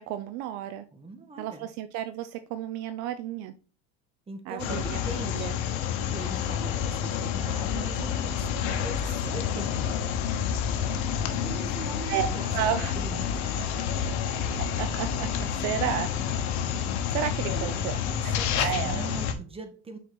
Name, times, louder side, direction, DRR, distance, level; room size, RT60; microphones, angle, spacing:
voice 1, 0.0-0.8 1.4-3.5 4.5-5.0 5.3-5.5 12.1-12.3 12.5-12.9 14.6-16.1 17.1-17.9 18.2-19.1, right 10 dB, 60° right, 11 dB, 0.6 m, -32 dB
voice 2, 0.9-1.7 4.3-5.6 6.1-10.1 11.4-14.2 17.4-17.8 18.1-20.0, right 3 dB, 20° right, 6 dB, 1.5 m, -41 dB
sound 1, 4.6-19.3, left 8 dB, 65° left, 1.1 m, -29 dB
6.2 x 4.2 x 4.0 m, 0.36 s
supercardioid pair, 105°, 32 cm